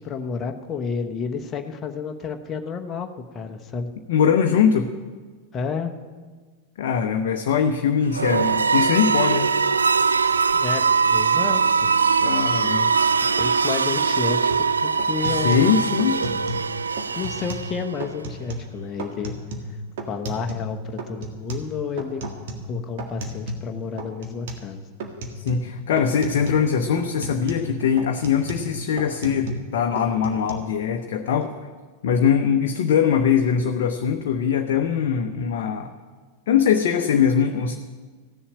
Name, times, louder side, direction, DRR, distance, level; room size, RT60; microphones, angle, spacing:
voice 1, 0.0-3.1 3.3-3.9 5.5-5.9 10.2-11.9 12.5-12.8 13.2-15.8 17.1-19.3 20.1-22.2 22.7-24.8, left 5 dB, 25° left, 4 dB, 1.0 m, -31 dB
voice 2, 4.1-4.9 6.8-9.5 12.2-13.0 15.4-16.2 25.3-31.5 32.0-35.9 36.5-37.8, left 7 dB, 55° left, 5 dB, 0.8 m, -21 dB
sound 1, 8.1-18.0, right 5 dB, 75° right, 0.3 m, -21 dB
sound 2, 14.5-14.7 15.0-16.7 17.0-17.7 18.0-18.7 19.0-20.7 21.0-23.7 24.0-24.7 25.0-25.7 26.0-26.7 27.0-29.7 30.0-30.5, right 1 dB, 55° right, 1.8 m, -34 dB
15.0 x 7.2 x 8.6 m, 1.5 s
figure-of-eight pair, 90°, 0 cm